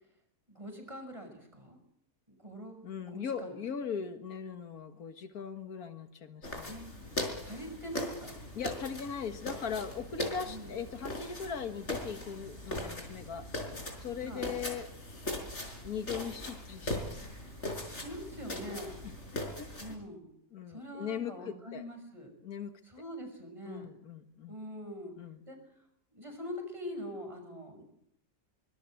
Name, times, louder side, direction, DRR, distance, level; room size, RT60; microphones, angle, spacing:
voice 1, 0.5-1.8 2.3-3.5 6.7-6.9 7.4-8.3 10.5-10.7 14.2-14.5 17.9-19.0 19.8-20.3 20.7-22.3 22.8-23.9 24.5-25.1 25.5-25.6 26.1-27.8, equal, 20° right, 4 dB, 6.4 m, -43 dB
voice 2, 2.8-6.7 8.5-13.5 14.0-14.9 15.8-17.3 19.3-20.0 20.5-21.8 22.4-22.7 23.7-24.6 25.2-25.4, left 6 dB, 80° left, 8 dB, 2.1 m, -39 dB
sound 1, 6.4-19.9, left 1 dB, 50° left, 5.3 m, -40 dB
24.5 x 21.0 x 7.9 m, 0.75 s
omnidirectional pair, 1.6 m